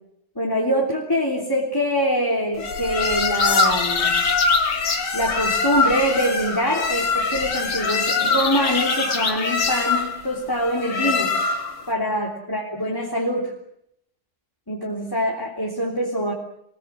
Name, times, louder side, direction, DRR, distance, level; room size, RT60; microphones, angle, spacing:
voice 1, 0.3-4.2 5.1-11.3 11.9-13.5 14.7-16.3, equal, 10° left, -2 dB, 3.2 m, -24 dB
sound 1, 2.6-11.8, left 4 dB, 90° left, 3.3 m, -22 dB
26.5 x 18.5 x 7.6 m, 0.76 s
omnidirectional pair, 2.3 m